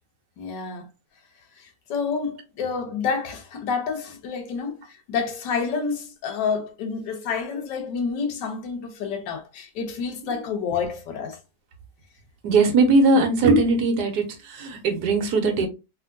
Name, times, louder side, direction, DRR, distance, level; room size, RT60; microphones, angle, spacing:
voice 1, 0.4-0.9 1.6-11.4, left 5 dB, 80° left, 1.5 m, -29 dB
voice 2, 12.4-15.7, right 3 dB, 70° right, 1.3 m, -20 dB
3.5 x 2.6 x 2.6 m
omnidirectional pair, 1.9 m